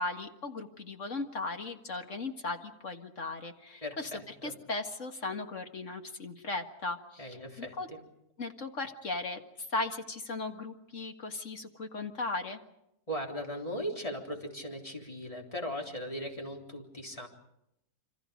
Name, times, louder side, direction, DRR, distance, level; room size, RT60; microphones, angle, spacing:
voice 1, 0.0-4.1 4.4-7.9 8.4-9.4 9.7-12.6, left 3 dB, 50° left, 5 dB, 2.0 m, -37 dB
voice 2, 3.8-4.5 7.2-8.0 13.1-17.3, equal, 20° left, 1 dB, 3.8 m, -38 dB
28.0 x 25.5 x 5.2 m, 0.81 s
omnidirectional pair, 1.7 m